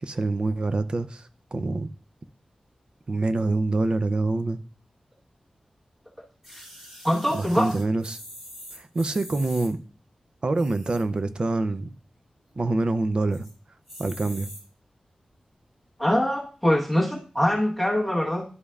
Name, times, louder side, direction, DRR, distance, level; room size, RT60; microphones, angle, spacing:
voice 1, 0.0-1.9 3.1-4.6 7.3-8.2 8.7-9.8 10.4-11.9 12.6-13.5 14.0-14.5, right 2 dB, 45° right, 11 dB, 0.5 m, -26 dB
sound 1, 6.4-9.7 10.5-11.2 11.6-11.7 11.9-12.0 12.4-12.8 13.3-13.5 13.9-14.6 15.3-15.4, equal, 15° right, 3.6 m, -44 dB
voice 2, 7.0-7.7 16.0-18.4, left 1 dB, ahead, -2 dB, 1.3 m, -23 dB
11.0 x 5.1 x 2.4 m, 0.38 s
wide cardioid pair, 120°, 2 cm